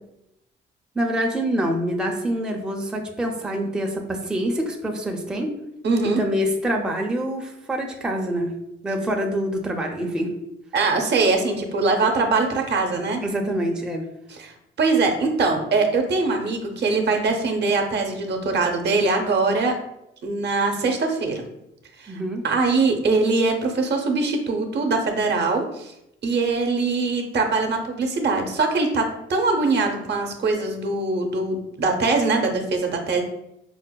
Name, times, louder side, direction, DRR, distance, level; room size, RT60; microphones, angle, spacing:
voice 1, 0.9-5.5 6.0-8.6 8.8-10.3 13.2-14.1 22.1-22.4, equal, 5° right, 1 dB, 0.4 m, -26 dB
voice 2, 5.8-6.2 10.7-13.2 14.3-19.8 20.2-21.4 22.0-22.1 22.4-25.9 26.2-33.2, right 3 dB, 60° right, 3 dB, 0.6 m, -22 dB
4.7 x 2.0 x 2.2 m, 0.83 s
cardioid pair, 90°, 20 cm